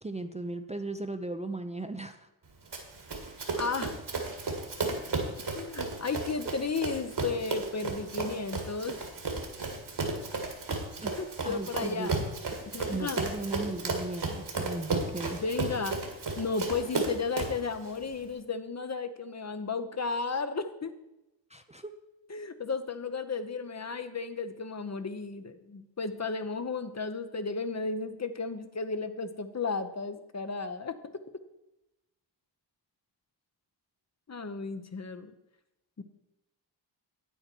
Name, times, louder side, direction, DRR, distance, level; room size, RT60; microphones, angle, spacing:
voice 1, 0.0-2.3 11.0-11.1 11.4-12.3 12.8-15.4 21.5-21.9, right 2 dB, 15° right, 7 dB, 0.5 m, -37 dB
Run, 2.7-17.7, right 3 dB, 60° right, 1.8 m, -34 dB
voice 2, 3.6-4.0 5.5-9.0 11.2-12.1 12.7-13.3 15.4-16.1 16.4-21.0 22.3-31.2 34.3-35.3 36.0-36.1, left 4 dB, 35° left, 10 dB, 0.7 m, -34 dB
8.8 x 8.1 x 4.5 m, 0.94 s
cardioid pair, 65°, 46 cm